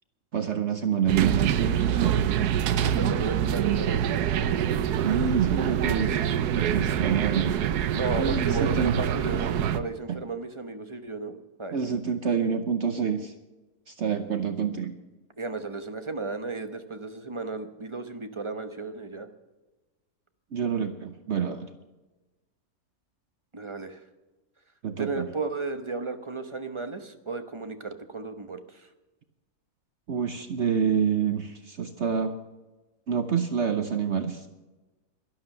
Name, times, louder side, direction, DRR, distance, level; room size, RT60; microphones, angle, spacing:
voice 1, 0.3-2.3 5.0-7.5 8.2-8.9 9.3-9.4 10.1-10.2 11.7-13.3 13.9-14.9 20.5-21.7 24.8-25.3 30.1-32.3 33.1-34.5, right 7 dB, 55° right, 8 dB, 1.0 m, -27 dB
sound 1, 1.1-9.8, right 9 dB, 85° right, 1.3 m, -25 dB
voice 2, 2.8-4.6 7.9-11.9 15.4-19.3 23.5-24.0 25.0-28.9, right 3 dB, 25° right, 7 dB, 0.8 m, -34 dB
12.0 x 12.0 x 6.7 m, 1.1 s
omnidirectional pair, 1.6 m